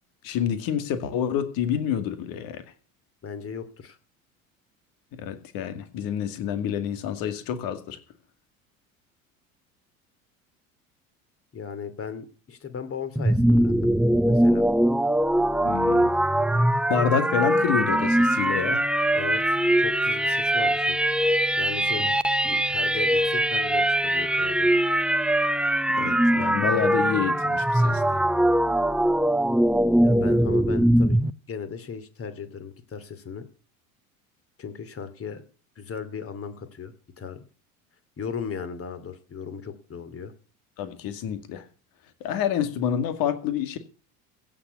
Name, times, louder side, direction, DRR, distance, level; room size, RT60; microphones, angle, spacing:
voice 1, 0.2-2.6 5.1-8.0 15.6-16.1 16.9-18.8 26.0-28.0 40.8-41.6 42.2-43.8, left 8 dB, 55° left, 9 dB, 2.3 m, -28 dB
voice 2, 3.2-4.0 11.5-13.9 14.3-14.7 19.1-21.0 21.6-22.1 22.4-24.7 30.0-31.2 31.5-33.5 34.6-35.4 35.8-37.4 38.2-40.3, left 6 dB, 30° left, 11 dB, 2.6 m, -37 dB
sound 1, 13.1-31.3, right 1 dB, ahead, 0.6 m, -22 dB
16.0 x 6.9 x 8.4 m, 0.39 s
figure-of-eight pair, 70°, 42 cm